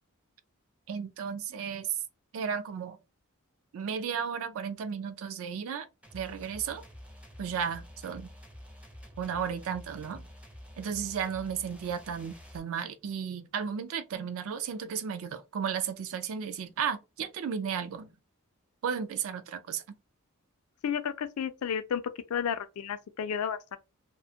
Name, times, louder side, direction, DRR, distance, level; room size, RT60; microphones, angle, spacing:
voice 1, 0.9-1.9 2.3-3.0 3.7-5.9 6.1-6.8 7.4-8.3 9.2-10.3 10.8-18.1 18.8-19.8, right 7 dB, 65° right, 0.4 m, -34 dB
sound 1, 6.0-12.6, equal, 5° right, 0.4 m, -49 dB
voice 2, 20.8-22.0 22.3-23.8, left 7 dB, 75° left, 0.4 m, -32 dB
2.4 x 2.2 x 2.7 m
head